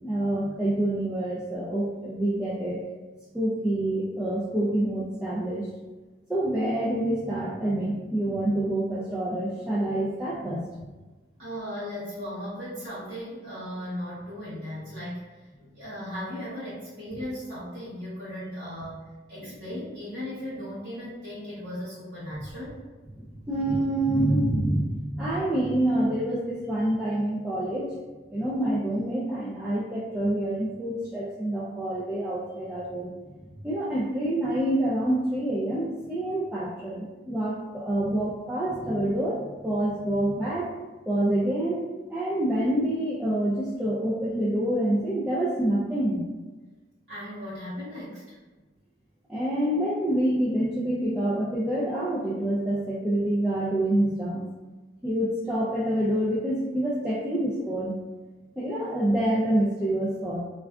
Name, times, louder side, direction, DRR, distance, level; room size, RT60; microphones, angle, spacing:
voice 1, 0.0-2.8 3.3-5.7 6.3-10.7 23.5-27.9 28.3-33.1 33.6-40.7 41.1-46.3 49.3-54.5 55.0-57.9 58.6-60.4, right 1 dB, 5° right, -7 dB, 0.3 m, -27 dB
voice 2, 11.4-15.3 15.6-19.0 19.3-22.8 47.1-48.4, equal, 65° right, -11 dB, 0.9 m, -37 dB
2.4 x 2.3 x 3.3 m, 1.2 s
head